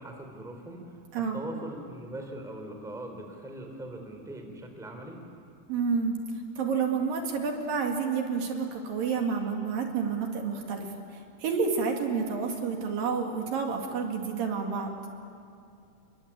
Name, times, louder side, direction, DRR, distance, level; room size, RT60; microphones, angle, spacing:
voice 1, 0.0-5.2, right 1 dB, ahead, 4 dB, 2.9 m, -41 dB
voice 2, 5.7-6.2 6.6-10.9 11.1-15.0, right 5 dB, 65° right, 2 dB, 3.8 m, -29 dB
30.0 x 22.5 x 8.8 m, 2.5 s
omnidirectional pair, 4.4 m